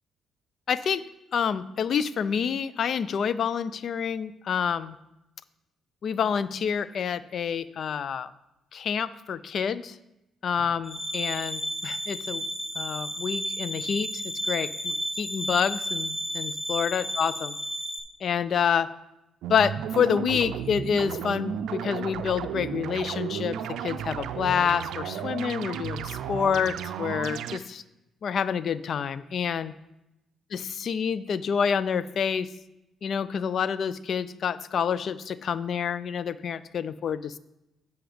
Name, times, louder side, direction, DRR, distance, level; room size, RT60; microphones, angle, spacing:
voice 1, 0.7-1.0 1.3-5.0 6.0-8.3 8.7-10.0 10.4-12.4 12.8-14.2 14.5-17.6 18.2-18.9 19.5-27.8 28.2-29.7 30.5-32.5 33.0-37.4, left 7 dB, 60° left, 16 dB, 0.4 m, -28 dB
sound 1, 10.8-18.0, equal, 15° left, 1.1 m, -32 dB
sound 2, 19.4-27.6, right 8 dB, 85° right, 0.4 m, -33 dB
7.9 x 5.7 x 5.0 m, 0.92 s
cardioid pair, 90°, 0 cm